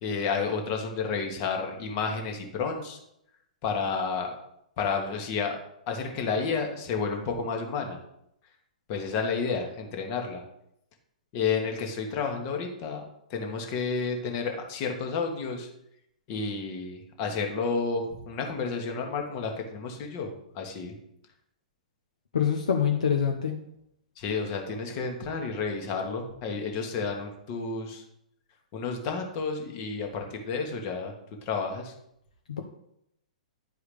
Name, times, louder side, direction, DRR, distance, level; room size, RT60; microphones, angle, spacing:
voice 1, 0.0-3.0 3.6-4.3 4.8-5.6 5.9-8.0 8.9-10.4 11.3-15.7 16.3-20.9 24.2-28.0 28.7-31.1 31.4-31.9, left 5 dB, 40° left, 3 dB, 1.4 m, -31 dB
voice 2, 22.3-23.5 32.5-32.6, left 7 dB, 70° left, 3 dB, 0.7 m, -25 dB
10.5 x 4.7 x 3.3 m, 0.77 s
figure-of-eight pair, 110°, 4 cm